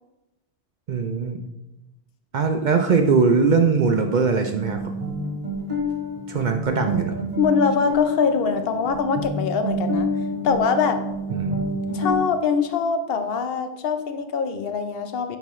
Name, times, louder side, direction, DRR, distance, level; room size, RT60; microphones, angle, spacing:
voice 1, 0.9-1.4 2.3-4.9 6.3-7.1 11.3-11.7, right 5 dB, 55° right, 5 dB, 0.5 m, -21 dB
sound 1, 4.4-12.2, left 1 dB, 35° right, 1.3 m, -28 dB
voice 2, 7.4-10.1 10.4-11.0 11.9-15.4, left 5 dB, 65° left, 8 dB, 0.8 m, -23 dB
8.9 x 4.0 x 3.1 m, 0.98 s
omnidirectional pair, 1.1 m